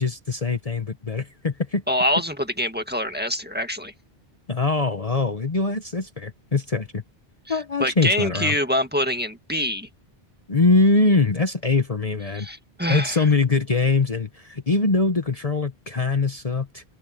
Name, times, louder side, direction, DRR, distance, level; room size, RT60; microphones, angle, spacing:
voice 1, 0.0-1.8 4.5-7.0 7.5-8.5 10.5-12.5 12.9-16.8, left 3 dB, 35° left, 1.2 m, -22 dB
voice 2, 1.9-3.9 7.5-9.9 12.3-13.3, equal, 10° right, 1.8 m, -25 dB
open air
omnidirectional pair, 1.1 m